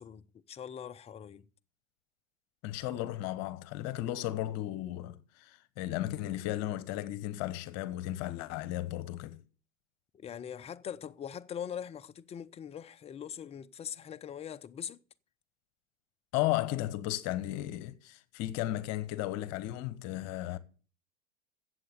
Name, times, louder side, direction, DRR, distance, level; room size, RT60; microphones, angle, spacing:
voice 1, 0.0-1.5 10.1-15.0, left 8 dB, 15° left, 0.6 m, -42 dB
voice 2, 2.6-9.4 16.3-20.6, left 15 dB, 40° left, 1.2 m, -35 dB
14.0 x 8.0 x 6.7 m
figure-of-eight pair, 90°, 39 cm